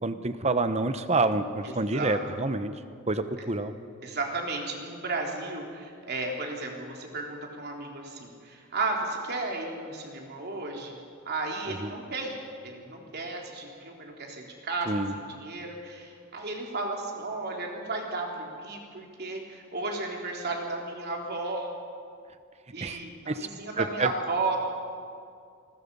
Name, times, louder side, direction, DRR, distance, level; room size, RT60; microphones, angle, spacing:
voice 1, 0.0-2.7 3.1-3.7 11.8-11.9 14.9-15.1 22.8-23.0 23.3-23.5 23.8-24.1, right 3 dB, 30° right, 10 dB, 1.0 m, -27 dB
voice 2, 1.6-2.2 4.0-11.0 11.3-12.4 12.6-21.7 22.7-24.6, right 3 dB, 50° right, 0 dB, 3.5 m, -34 dB
26.5 x 20.5 x 5.5 m, 2.3 s
head